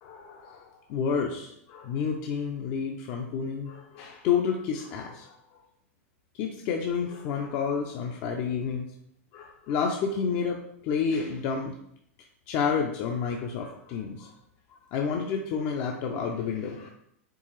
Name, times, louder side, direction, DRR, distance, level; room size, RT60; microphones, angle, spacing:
voice 1, 0.0-5.3 6.4-8.9 9.3-10.6 10.8-11.7 12.5-14.3 14.9-16.9, left 6 dB, 40° left, 2 dB, 0.5 m, -30 dB
4.6 x 3.2 x 3.1 m, 0.71 s
hypercardioid pair, 140°, 8 cm